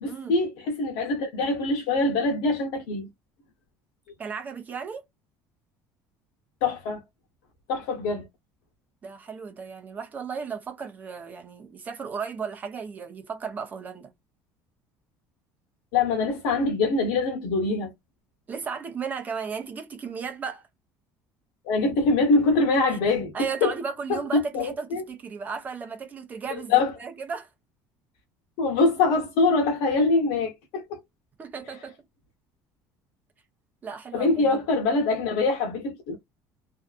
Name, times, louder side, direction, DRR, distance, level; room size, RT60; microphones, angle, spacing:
voice 1, 0.0-3.1 6.6-7.0 7.7-8.3 15.9-17.9 21.6-23.7 24.1-24.2 24.5-25.0 26.5-26.9 28.6-31.0 34.1-36.1, left 3 dB, 80° left, 0.8 m, -24 dB
voice 2, 4.2-5.0 9.0-14.1 18.5-20.6 22.9-23.0 23.3-27.5 31.4-31.9 33.8-34.6, right 6 dB, 25° right, 0.7 m, -35 dB
2.6 x 2.4 x 2.3 m
cardioid pair, 160°, 7 cm